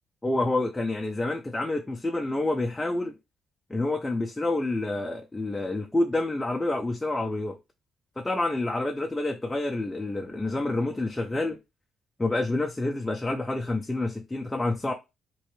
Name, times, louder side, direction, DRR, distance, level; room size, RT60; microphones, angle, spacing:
voice 1, 0.2-3.1 3.7-7.6 8.2-11.6 12.2-14.9, left 2 dB, 15° left, 0.5 m, -28 dB
3.1 x 3.0 x 3.1 m
cardioid pair, 90°, 0 cm